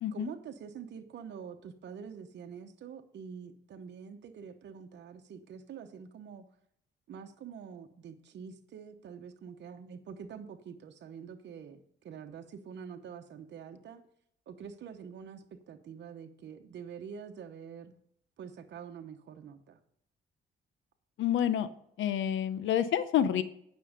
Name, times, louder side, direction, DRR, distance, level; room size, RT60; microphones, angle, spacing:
voice 1, 0.1-6.5 7.1-14.0 14.5-17.9 18.4-19.8, right 7 dB, 60° right, 5 dB, 1.0 m, -46 dB
voice 2, 21.2-21.7 22.0-23.4, left 10 dB, 75° left, 13 dB, 0.8 m, -28 dB
9.4 x 6.3 x 5.1 m, 0.71 s
cardioid pair, 90°, 20 cm